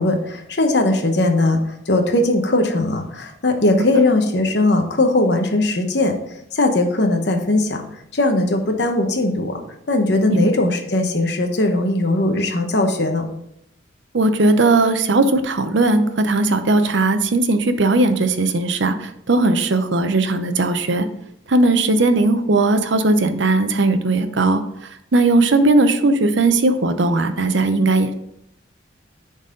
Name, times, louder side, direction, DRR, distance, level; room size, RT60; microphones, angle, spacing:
voice 1, 0.0-6.1 6.5-7.8 8.1-9.6 9.9-13.3, left 2 dB, 60° left, 5 dB, 1.0 m, -19 dB
voice 2, 14.1-21.1 21.5-28.1, right 2 dB, 70° right, 9 dB, 0.7 m, -18 dB
10.0 x 4.1 x 3.8 m, 0.76 s
head